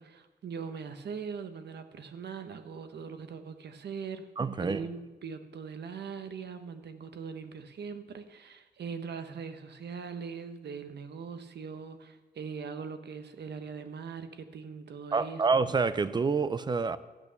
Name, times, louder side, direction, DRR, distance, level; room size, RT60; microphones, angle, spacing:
voice 1, 0.0-4.2 4.6-15.6, right 6 dB, 80° right, 1.0 m, -41 dB
voice 2, 4.4-4.8 15.1-17.0, right 4 dB, 25° right, 0.5 m, -27 dB
13.0 x 8.8 x 6.8 m
wide cardioid pair, 170°, 17 cm